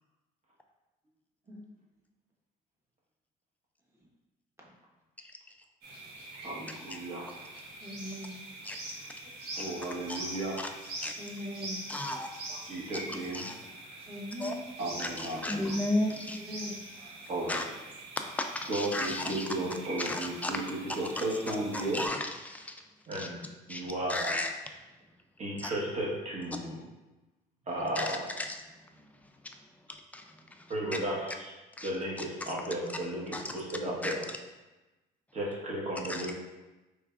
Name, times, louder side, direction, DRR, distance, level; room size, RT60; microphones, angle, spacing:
sound 1, 5.8-22.1, right 2 dB, 70° right, 1.2 m, -44 dB
voice 1, 6.4-7.3 9.5-10.6 12.7-13.5 14.8-15.6 17.3-17.6 18.7-22.0 23.1-23.4 23.7-24.3 25.4-26.8 27.7-28.2 30.7-31.5 31.8-34.2 35.3-36.3, right 1 dB, 45° right, -4 dB, 1.3 m, -34 dB
voice 2, 7.8-8.4 11.2-11.8 14.1-14.6 16.4-16.8, left 1 dB, 15° right, -3 dB, 1.0 m, -40 dB
voice 3, 11.9-12.3 12.9-13.0 13.3-13.6 14.4-14.5 15.0-16.4 17.5-17.6 18.4-19.5 20.0-20.6 20.9-22.7 23.1-23.3 23.7-23.8 24.1-24.5 25.6-25.7 28.0-28.6 29.9-30.7 31.8-31.9 32.4-32.5 33.3-33.6 34.0-34.4 36.1-36.3, left 1 dB, 10° left, 4 dB, 0.4 m, -34 dB
4.5 x 3.3 x 2.4 m, 1.1 s
cardioid pair, 110°, 17 cm